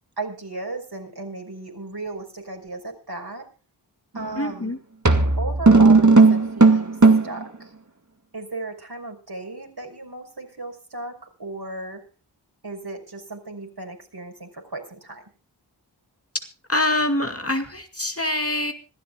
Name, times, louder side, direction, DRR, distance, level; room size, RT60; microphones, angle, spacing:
voice 1, 0.2-3.5 4.1-4.7 5.4-7.0 7.2-7.7 8.3-12.0 12.6-15.2, right 2 dB, 60° right, 3 dB, 5.5 m, -35 dB
sound 1, 4.2-4.4 5.0-7.4, right 3 dB, 40° right, 2.0 m, -14 dB
voice 2, 4.4-4.8 16.7-18.7, left 1 dB, 30° left, 6 dB, 2.2 m, -24 dB
26.0 x 13.0 x 2.4 m, 0.35 s
wide cardioid pair, 45°, 44 cm